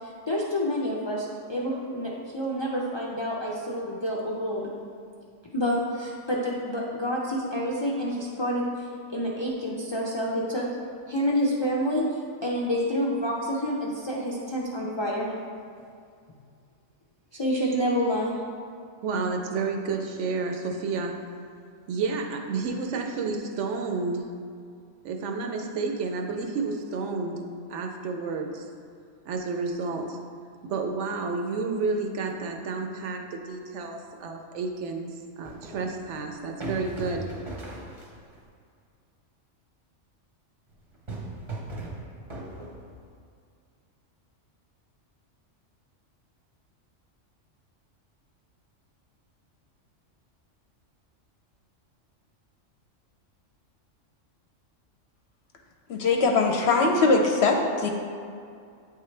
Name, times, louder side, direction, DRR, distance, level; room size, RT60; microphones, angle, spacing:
voice 1, 0.0-4.7 5.5-10.7 11.1-12.0 12.4-15.3 17.3-18.4, equal, 40° left, -5 dB, 0.3 m, -28 dB
voice 2, 19.0-21.2 21.9-24.3 25.0-28.7 29.2-30.2 30.6-35.1 35.4-37.3, right 4 dB, 70° right, 3 dB, 0.9 m, -30 dB
sound 1, 35.4-38.4 40.7-43.1, right 2 dB, 30° right, 0.7 m, -38 dB
voice 3, 55.9-57.9, left 3 dB, 65° left, 2 dB, 0.8 m, -21 dB
8.5 x 3.7 x 3.2 m, 2.3 s
omnidirectional pair, 1.3 m